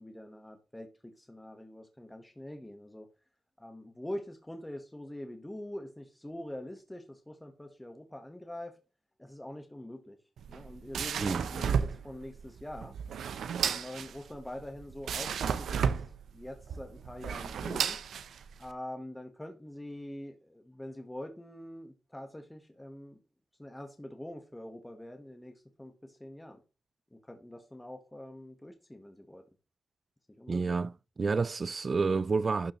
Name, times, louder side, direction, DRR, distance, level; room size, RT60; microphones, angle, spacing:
voice 1, 0.0-3.1 3.6-8.8 9.2-10.2 10.5-13.0 13.6-16.0 16.3-18.0 18.6-23.2 23.6-26.6 27.1-29.4 30.4-30.8, left 1 dB, 10° left, 1.3 m, -44 dB
sound 1, 10.4-18.7, right 7 dB, 85° right, 0.6 m, -33 dB
voice 2, 30.5-32.7, right 4 dB, 40° right, 0.3 m, -29 dB
12.0 x 6.9 x 3.1 m
cardioid pair, 90°, 0 cm